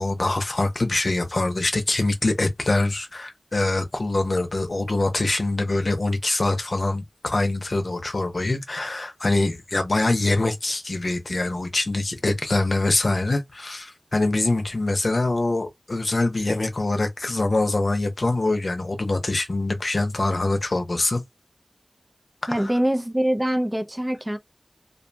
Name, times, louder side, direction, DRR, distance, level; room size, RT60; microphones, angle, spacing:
voice 1, 0.0-21.2 22.4-22.7, left 2 dB, 60° left, 0.7 m, -24 dB
voice 2, 22.5-24.4, right 1 dB, 15° right, 0.4 m, -24 dB
2.5 x 2.2 x 2.6 m
wide cardioid pair, 55°, 0 cm